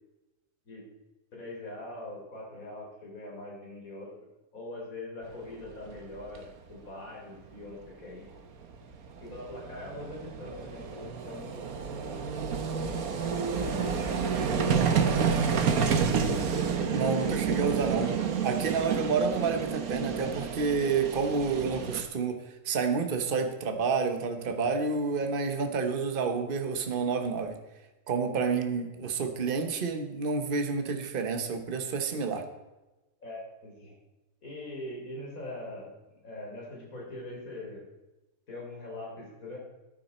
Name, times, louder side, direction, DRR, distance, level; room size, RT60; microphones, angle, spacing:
voice 1, 1.3-4.1 4.5-8.3 9.2-14.0 14.4-15.9 33.2-34.0 34.4-35.9 36.2-37.8 38.5-39.6, left 1 dB, 65° left, -2 dB, 4.0 m, -42 dB
Vehicle, 5.9-6.0 6.2-6.4 8.4-8.5 8.6-22.0, right 6 dB, 70° right, 1.5 m, -29 dB
voice 2, 16.9-27.6 28.1-32.4, right 5 dB, 40° right, 6 dB, 1.2 m, -29 dB
14.0 x 9.7 x 4.4 m, 1.1 s
omnidirectional pair, 1.6 m